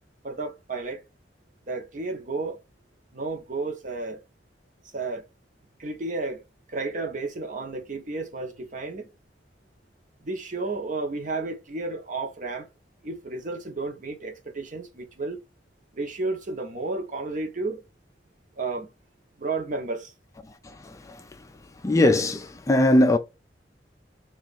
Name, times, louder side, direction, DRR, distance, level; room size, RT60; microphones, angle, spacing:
voice 1, 0.2-1.0 1.7-2.6 3.1-4.2 4.8-5.3 5.8-9.1 10.2-12.7 13.0-15.4 15.9-17.8 18.5-18.9 19.4-20.1, right 3 dB, 45° right, 0.8 m, -32 dB
voice 2, 21.8-23.2, left 1 dB, 20° left, 0.3 m, -19 dB
2.9 x 2.4 x 3.9 m
head